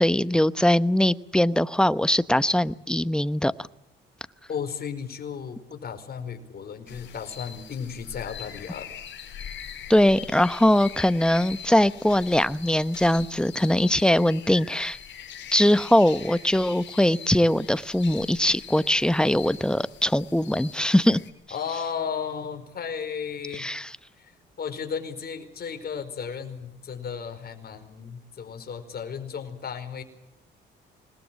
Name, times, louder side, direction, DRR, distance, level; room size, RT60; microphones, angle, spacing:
voice 1, 0.0-3.5 9.9-15.0 15.5-21.2 23.5-23.9, left 1 dB, 5° left, 14 dB, 0.9 m, -21 dB
voice 2, 4.5-9.0 21.5-23.7 24.2-24.3 24.6-30.0, left 7 dB, 50° left, 6 dB, 5.0 m, -34 dB
sound 1, 6.9-21.3, left 8 dB, 65° left, 5.3 m, -42 dB
26.5 x 20.5 x 7.6 m, 0.84 s
cardioid pair, 90°, 20 cm